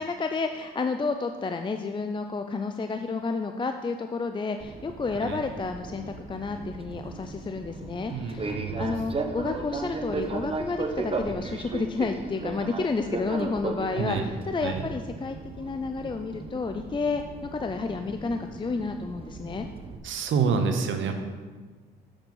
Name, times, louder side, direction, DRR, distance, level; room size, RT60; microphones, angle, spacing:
voice 1, 0.0-19.7, left 4 dB, 25° left, 6 dB, 0.5 m, -31 dB
Fixed-wing aircraft airplane, 4.6-20.0, right 3 dB, 30° right, 0.9 m, -36 dB
voice 2, 8.1-8.8 14.0-14.2 14.6-14.8 20.0-21.1, right 5 dB, 75° right, 6 dB, 1.1 m, -27 dB
7.6 x 7.0 x 5.4 m, 1.4 s
cardioid pair, 90°, 20 cm